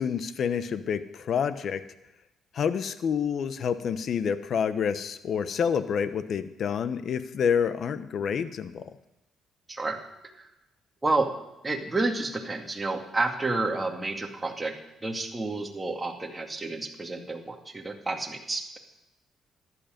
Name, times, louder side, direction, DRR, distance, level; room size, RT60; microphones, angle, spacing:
voice 1, 0.0-1.8 2.5-8.9, left 7 dB, 60° left, 12 dB, 0.9 m, -28 dB
voice 2, 11.6-14.7 15.0-18.8, right 2 dB, 20° right, 2 dB, 2.3 m, -30 dB
14.0 x 11.5 x 5.2 m, 0.91 s
cardioid pair, 90°, 0 cm